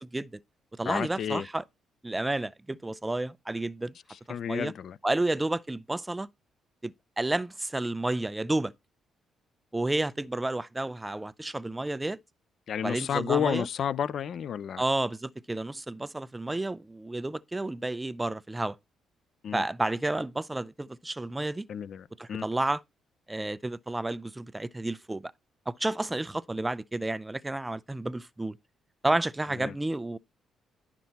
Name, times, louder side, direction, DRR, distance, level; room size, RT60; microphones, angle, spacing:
voice 1, 0.0-0.4 0.8-1.6 2.0-3.9 4.5-4.7 5.0-6.3 6.8-8.7 9.7-12.2 12.8-13.7 14.8-18.8 19.5-21.7 22.2-22.8 23.3-25.3 25.7-28.6 29.0-30.2, right 2 dB, 15° right, 0.5 m, -31 dB
voice 2, 0.8-1.5 4.1-5.0 12.7-14.8 19.4-19.6 21.7-22.5 29.6-29.8, left 8 dB, 60° left, 0.5 m, -31 dB
11.5 x 6.0 x 4.1 m
cardioid pair, 90°, 0 cm